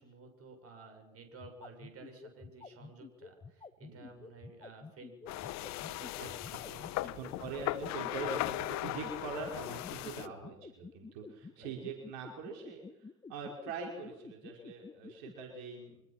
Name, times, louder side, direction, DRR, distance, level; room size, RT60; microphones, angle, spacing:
voice 1, 0.0-6.9 9.9-10.4 11.6-11.7, right 3 dB, 35° right, 5 dB, 6.8 m, -54 dB
sound 1, 1.3-15.3, left 4 dB, 15° left, 1.4 m, -49 dB
sound 2, 5.3-10.3, left 16 dB, 45° left, 1.0 m, -38 dB
voice 2, 7.0-16.0, right 4 dB, 55° right, 1 dB, 5.4 m, -43 dB
25.0 x 21.5 x 6.0 m, 0.91 s
hypercardioid pair, 90°, 40 cm